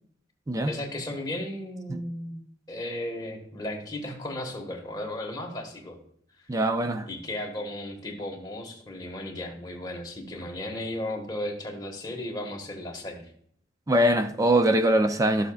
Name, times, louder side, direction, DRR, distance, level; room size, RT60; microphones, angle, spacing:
voice 1, 0.7-2.4 2.7-6.0 7.1-13.3, left 1 dB, 20° left, 1.6 m, -35 dB
voice 2, 6.5-7.1 13.9-15.5, right 1 dB, 15° right, 0.4 m, -22 dB
13.0 x 6.9 x 2.4 m
head